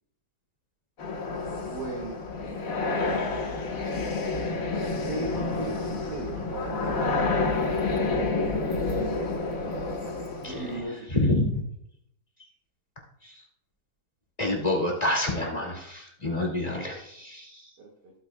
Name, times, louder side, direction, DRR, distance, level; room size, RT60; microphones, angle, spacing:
sound 1, 1.0-10.8, left 3 dB, 55° left, 1.7 m, -29 dB
voice 1, 1.7-2.2 2.7-4.1 5.1-7.6 8.0-9.8 10.5-11.1 17.8-17.9, right 2 dB, 80° right, -4 dB, 2.5 m, -38 dB
sound 2, 4.9-10.5, right 3 dB, 65° right, 3.7 m, -47 dB
voice 2, 11.1-11.6 13.2-13.3 14.4-17.7, left 1 dB, 25° left, -1 dB, 2.5 m, -27 dB
15.5 x 9.0 x 2.3 m, 0.74 s
omnidirectional pair, 1.8 m